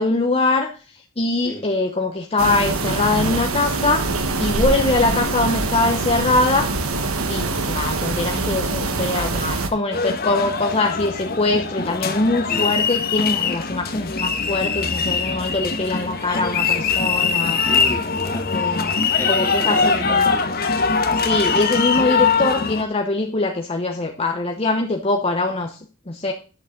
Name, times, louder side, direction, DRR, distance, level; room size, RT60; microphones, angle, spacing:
voice 1, 0.0-6.7 7.3-17.6 18.5-18.9 19.3-20.3 21.2-25.8 26.1-26.3, left 2 dB, 30° left, 3 dB, 0.9 m, -22 dB
sound 1, 2.4-9.7, right 3 dB, 85° right, 1.4 m, -24 dB
sound 2, 9.9-22.8, left 5 dB, 45° left, 1.1 m, -22 dB
voice 2, 17.7-18.6 19.2-20.6, equal, 10° left, 1 dB, 2.0 m, -33 dB
11.0 x 6.9 x 3.9 m, 0.37 s
head